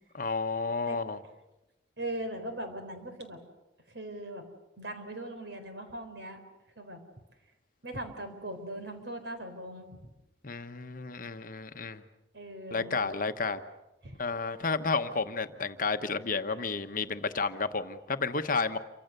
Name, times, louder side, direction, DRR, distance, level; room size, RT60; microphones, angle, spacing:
voice 1, 0.1-1.2 10.4-12.0 12.7-13.6 14.2-18.8, left 4 dB, 45° left, 9 dB, 1.1 m, -31 dB
voice 2, 2.0-3.4 3.9-4.4 4.8-6.4 6.8-7.0 7.8-10.1 12.3-13.1 14.0-14.2, right 1 dB, 65° right, 7 dB, 4.2 m, -40 dB
28.5 x 25.0 x 6.8 m, 1.0 s
head